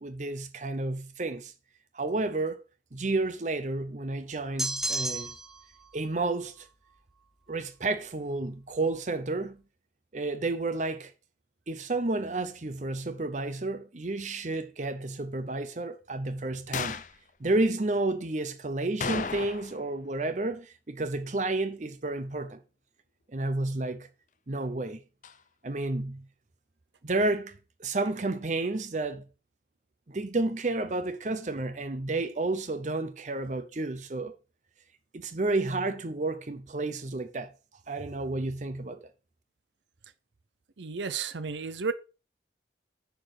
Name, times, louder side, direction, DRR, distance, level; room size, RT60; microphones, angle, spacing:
voice 1, 0.0-1.5 1.9-2.6 2.9-5.3 5.9-6.7 7.5-9.6 10.1-11.1 11.7-17.0 17.4-22.6 23.3-24.1 24.5-25.0 25.6-26.2 27.0-29.2 30.1-34.3 35.1-37.5 37.9-39.0, right 2 dB, 40° right, 0.7 m, -31 dB
sound 1, 4.6-5.6, right 1 dB, ahead, 0.6 m, -31 dB
sound 2, 16.7-17.2 19.0-19.9 20.1-20.2 25.2-25.4, left 5 dB, 45° left, 0.5 m, -34 dB
voice 2, 40.8-41.9, right 5 dB, 85° right, 0.7 m, -32 dB
10.0 x 4.5 x 4.8 m
head